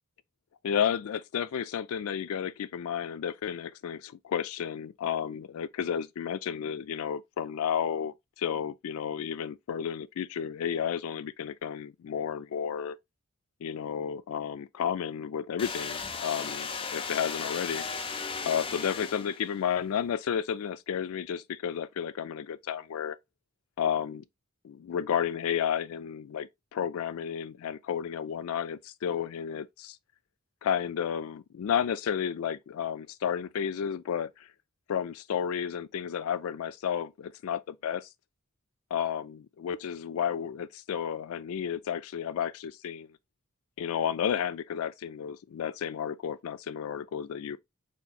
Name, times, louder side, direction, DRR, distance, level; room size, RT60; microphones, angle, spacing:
voice 1, 0.6-13.0 13.6-17.8 18.4-23.2 23.8-24.2 24.6-30.0 30.6-34.5 34.9-38.1 38.9-43.1 43.8-47.6, left 8 dB, 75° left, 0.3 m, -32 dB
sound 1, 15.6-19.6, left 5 dB, 25° left, 0.5 m, -36 dB
4.3 x 4.0 x 2.4 m
head